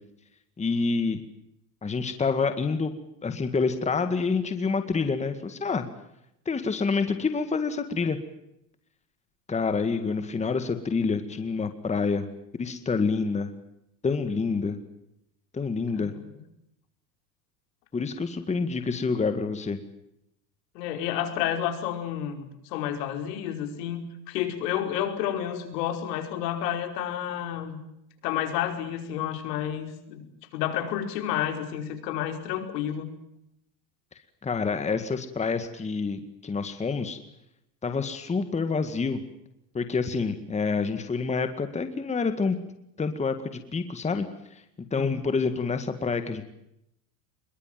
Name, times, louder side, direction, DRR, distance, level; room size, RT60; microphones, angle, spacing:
voice 1, 0.6-1.2 1.8-2.9 3.2-5.8 6.5-8.2 9.5-12.3 12.5-13.5 14.0-14.8 15.5-16.1 17.9-19.8 34.4-37.2 37.8-39.2 39.7-42.6 43.0-44.3 44.5-44.6 44.9-46.4, left 4 dB, 15° left, 9 dB, 2.0 m, -27 dB
voice 2, 20.8-27.8 28.2-30.3 30.5-33.1 44.9-45.2, left 10 dB, 70° left, 6 dB, 5.1 m, -30 dB
25.5 x 22.5 x 7.6 m, 0.80 s
supercardioid pair, 130°, 49 cm